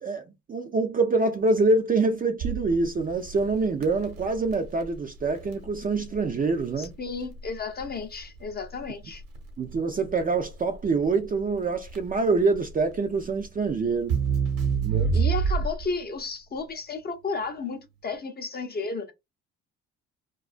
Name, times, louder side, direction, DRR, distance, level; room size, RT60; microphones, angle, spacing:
voice 1, 0.0-6.9 9.6-14.2 14.8-15.2, right 3 dB, 25° right, 0.4 m, -25 dB
Crackle, 2.4-16.0, right 6 dB, 65° right, 0.9 m, -30 dB
voice 2, 6.8-9.2 15.1-19.1, left 4 dB, 25° left, 0.5 m, -33 dB
2.3 x 2.3 x 2.4 m
hypercardioid pair, 55°, 36 cm